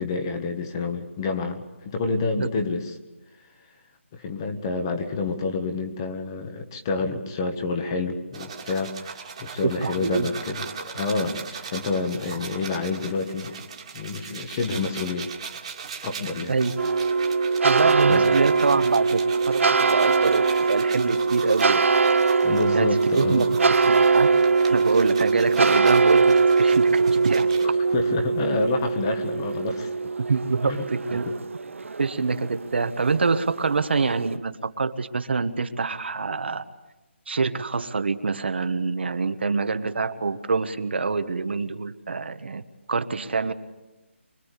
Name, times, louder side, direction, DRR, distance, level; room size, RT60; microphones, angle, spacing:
voice 1, 0.0-2.9 4.1-13.5 13.9-15.3 16.0-16.5 18.1-18.3 22.4-23.5 27.6-29.9 30.7-30.8 31.1-31.2, left 3 dB, 20° left, 6 dB, 1.4 m, -28 dB
sound 1, 8.3-27.7, right 6 dB, 30° right, 2.0 m, -39 dB
voice 2, 9.6-10.3 16.5-16.7 17.6-19.2 19.5-21.8 22.7-22.9 23.2-23.4 23.9-24.3 24.7-27.5 30.2-31.2 32.0-36.6 37.3-42.6 42.9-43.5, right 4 dB, 55° right, 10 dB, 1.3 m, -25 dB
sound 2, 16.8-34.4, right 4 dB, 80° right, 0.8 m, -22 dB
24.5 x 23.0 x 8.4 m, 1.1 s
hypercardioid pair, 175°, 7 cm